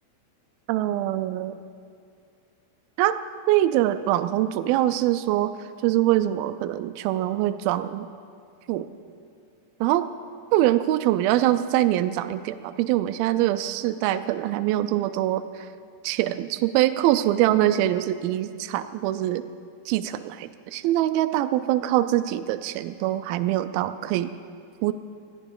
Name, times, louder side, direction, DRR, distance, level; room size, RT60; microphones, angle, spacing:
voice 1, 0.7-1.6 3.0-3.2 3.5-8.1 8.7-8.9 9.8-10.1 10.5-15.7 16.0-19.4 19.9-24.3 24.8-24.9, right 14 dB, 85° right, 10 dB, 2.1 m, -24 dB
21.5 x 14.5 x 3.8 m, 2.3 s
omnidirectional pair, 4.8 m